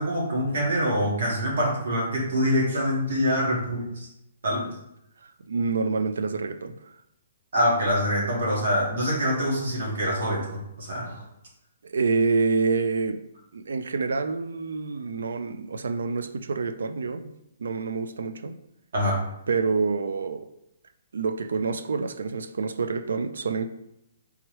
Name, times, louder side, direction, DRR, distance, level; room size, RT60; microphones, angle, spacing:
voice 1, 0.0-4.1 4.4-4.7 7.5-10.4 10.8-11.2 18.9-19.2, equal, 55° right, 1.5 m, -25 dB
voice 2, 5.2-6.8 11.8-13.2 13.5-17.3 17.6-18.6 19.5-20.5 21.1-23.7, right 4 dB, 90° right, 0.3 m, -27 dB
3.4 x 3.1 x 3.1 m
hypercardioid pair, 180°, 0 cm